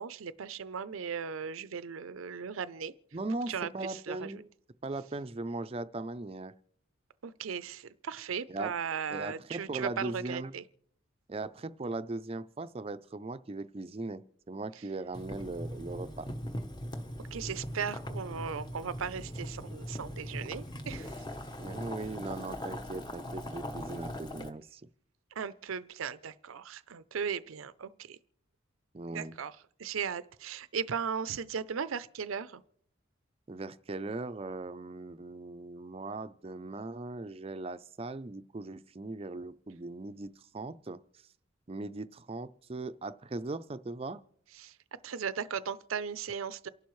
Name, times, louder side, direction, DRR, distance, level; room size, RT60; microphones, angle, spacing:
voice 1, 0.0-2.9 3.5-4.4 7.2-10.6 17.3-21.2 25.4-28.2 29.1-32.6 44.5-44.8 45.0-46.7, right 6 dB, 90° right, 0.5 m, -37 dB
voice 2, 3.1-4.5 4.8-6.5 8.5-8.8 9.1-10.5 11.3-16.3 21.6-24.8 28.9-29.3 33.5-41.0 41.7-44.2, right 2 dB, 30° right, 0.4 m, -39 dB
Boiling, 15.1-24.5, equal, 20° left, 0.9 m, -40 dB
28.5 x 11.5 x 3.1 m
head